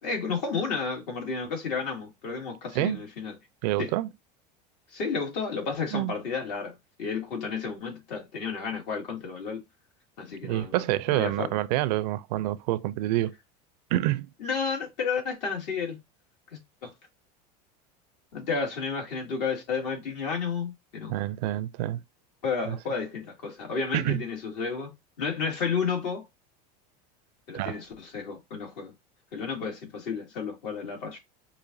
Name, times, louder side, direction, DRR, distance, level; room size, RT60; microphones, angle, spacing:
voice 1, 0.0-3.4 3.8-3.9 4.9-9.6 10.2-11.6 14.4-16.0 16.5-16.9 18.3-21.1 22.4-26.3 27.5-28.9 29.3-31.2, left 5 dB, 75° left, 2.2 m, -32 dB
voice 2, 3.6-4.1 5.9-6.1 10.4-13.3 13.9-14.3 21.1-22.0 22.7-22.8 23.9-24.2 27.5-27.7, right 15 dB, 75° right, 0.4 m, -27 dB
4.9 x 2.6 x 2.6 m
supercardioid pair, 115°, 21 cm